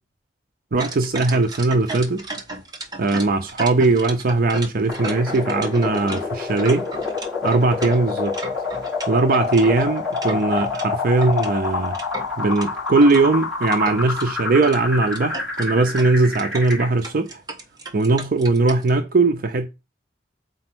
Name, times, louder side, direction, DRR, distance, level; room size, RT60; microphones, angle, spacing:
voice 1, 0.7-2.2 3.0-6.9 7.4-8.4 9.1-12.0 12.4-17.4 17.9-19.7, right 3 dB, 55° right, 0.6 m, -19 dB
sound 1, 0.8-10.9 11.2-13.2 13.6-14.3 14.6-14.8 15.0-18.9, right 2 dB, 25° right, 1.3 m, -35 dB
sound 2, 4.9-16.9, left 4 dB, 5° right, 4.8 m, -28 dB
5.4 x 4.4 x 6.0 m
head